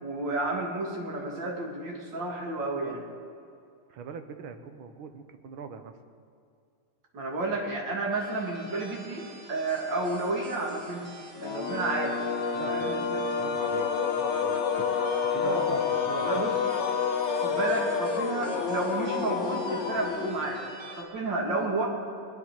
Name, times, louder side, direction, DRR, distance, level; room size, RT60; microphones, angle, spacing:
voice 1, 0.0-3.0 7.1-12.2 12.7-13.2 15.4-16.6 17.4-20.6 21.0-21.9, right 2 dB, 60° right, 0 dB, 2.8 m, -31 dB
voice 2, 3.9-6.0 12.5-14.9 15.2-16.5, right 6 dB, 75° right, 8 dB, 1.8 m, -43 dB
sound 1, 8.1-21.0, right 2 dB, 40° right, 1.5 m, -47 dB
sound 2, 11.4-20.7, left 6 dB, 80° left, 0.6 m, -29 dB
21.0 x 9.4 x 5.9 m, 2.5 s
omnidirectional pair, 2.4 m